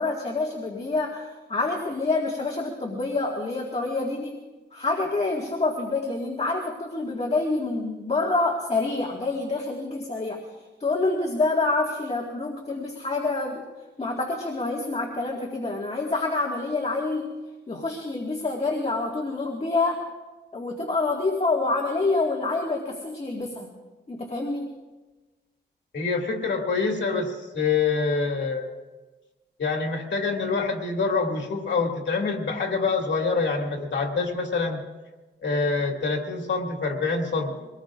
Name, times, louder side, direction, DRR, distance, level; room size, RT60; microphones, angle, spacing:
voice 1, 0.0-4.4 4.7-10.4 10.8-13.6 14.0-17.3 17.7-20.0 20.5-23.7 24.1-24.7, left 3 dB, 35° left, 0 dB, 1.8 m, -27 dB
voice 2, 25.9-28.7 29.6-34.8 35.4-37.7, left 4 dB, 80° left, 1 dB, 2.4 m, -26 dB
24.0 x 19.0 x 2.5 m, 1.2 s
wide cardioid pair, 95°, 19 cm